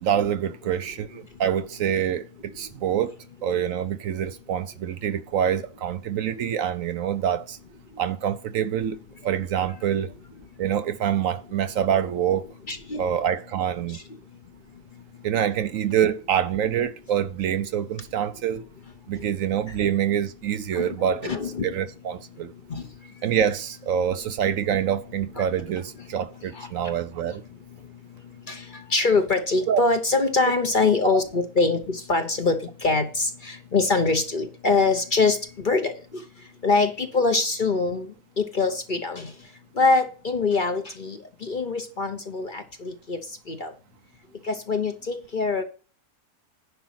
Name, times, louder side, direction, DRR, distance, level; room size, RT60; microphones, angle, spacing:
voice 1, 0.0-2.3 2.6-3.1 3.4-7.6 8.0-9.0 9.2-10.1 10.6-12.5 13.0-14.0 15.2-18.6 19.1-21.3 21.6-22.5 23.2-27.4 29.7-29.8 31.0-31.2, right 9 dB, 70° right, 0.9 m, -26 dB
voice 2, 12.7-13.0 19.2-19.3 20.7-21.0 21.2-21.7 22.7-22.8 26.5-26.7 28.5-36.2 36.6-38.1 38.4-39.3 39.8-43.2 43.5-43.7 44.5-45.6, left 3 dB, 40° left, 0.9 m, -24 dB
10.5 x 5.2 x 5.8 m
omnidirectional pair, 1.6 m